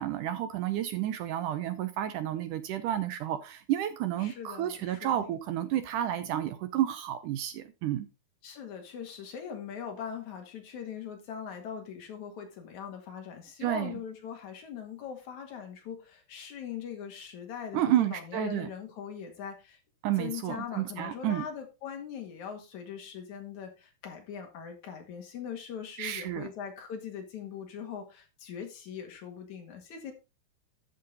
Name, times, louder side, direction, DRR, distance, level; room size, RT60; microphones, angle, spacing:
voice 1, 0.0-8.1 13.6-14.0 17.7-18.7 20.0-21.5 26.0-26.5, right 12 dB, 80° right, 1.9 m, -31 dB
voice 2, 4.2-5.4 8.4-19.8 20.2-30.1, left 7 dB, 55° left, 2.9 m, -41 dB
11.5 x 6.8 x 3.9 m
omnidirectional pair, 4.5 m